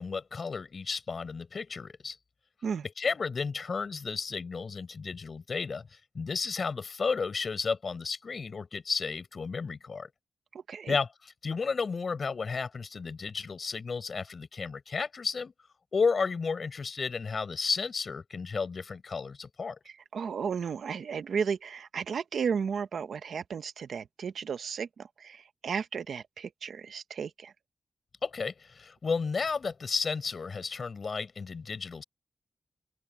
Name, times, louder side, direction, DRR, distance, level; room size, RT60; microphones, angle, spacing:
voice 1, 0.0-2.2 3.0-10.1 10.9-11.1 11.4-15.5 15.9-19.8 28.2-32.0, left 5 dB, 55° left, 4.6 m, -32 dB
voice 2, 10.5-11.0 19.9-27.5, right 6 dB, 90° right, 0.9 m, -34 dB
open air
wide cardioid pair, 120°, 0 cm